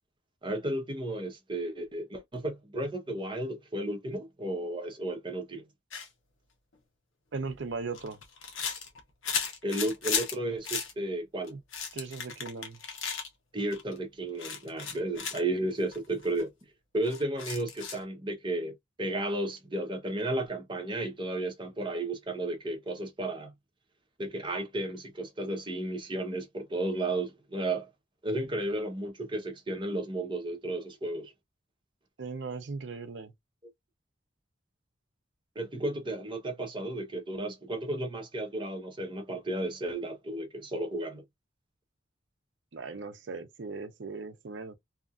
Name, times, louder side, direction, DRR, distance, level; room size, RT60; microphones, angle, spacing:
voice 1, 0.4-5.6 9.6-11.5 13.5-16.5 16.9-23.5 24.2-27.9 28.2-31.3 35.5-41.2, right 1 dB, 25° right, 0.8 m, -33 dB
sound 1, 5.9-6.1 7.4-10.3 10.6-10.9 11.5-13.3 13.7-14.0 14.4-15.4 15.9-16.0 16.2-16.4 17.0-18.0, left 6 dB, 85° left, 0.9 m, -35 dB
voice 2, 7.3-8.2 11.5-11.6 11.9-12.8 32.2-33.3 42.7-44.8, right 4 dB, 65° right, 0.5 m, -38 dB
2.8 x 2.4 x 2.3 m
head